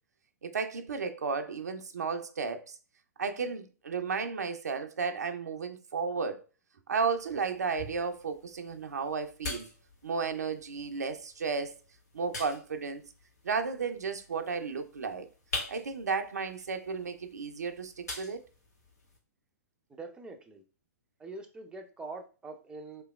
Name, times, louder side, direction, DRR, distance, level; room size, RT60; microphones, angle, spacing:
voice 1, 0.4-2.8 3.2-6.4 6.9-9.7 10.0-11.8 12.1-13.0 13.4-15.3 15.7-18.4, right 5 dB, 75° right, 0.5 m, -33 dB
sound 1, 7.2-19.2, left 2 dB, 75° left, 1.6 m, -45 dB
voice 2, 19.9-20.6 21.2-23.0, right 3 dB, 10° right, 0.5 m, -44 dB
3.2 x 2.9 x 2.3 m
figure-of-eight pair, 110°, 9 cm